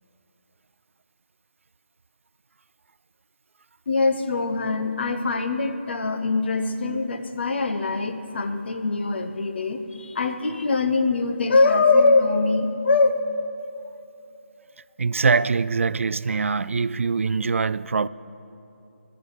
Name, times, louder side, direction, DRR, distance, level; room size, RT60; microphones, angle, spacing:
voice 1, 3.9-13.2, left 3 dB, 55° left, 1.1 m, -22 dB
voice 2, 15.0-18.1, right 4 dB, 75° right, 0.4 m, -23 dB
19.5 x 6.7 x 8.5 m
figure-of-eight pair, 160°, 7 cm